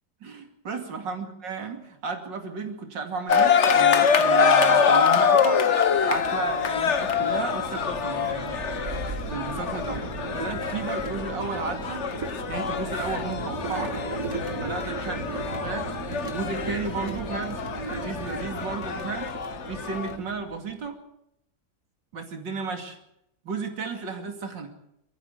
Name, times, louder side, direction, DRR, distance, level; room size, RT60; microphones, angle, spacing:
voice 1, 0.2-5.6 6.0-8.7 9.3-10.1 10.3-12.1 12.5-14.0 14.6-15.9 16.2-19.3 19.7-21.0 22.1-23.0 23.4-24.7, right 4 dB, 80° right, 6 dB, 3.2 m, -33 dB
sound 1, 3.3-20.2, left 6 dB, 45° left, 1.2 m, -25 dB
sound 2, 5.9-20.9, right 3 dB, 50° right, 2.3 m, -37 dB
22.5 x 14.0 x 8.2 m, 0.79 s
omnidirectional pair, 1.9 m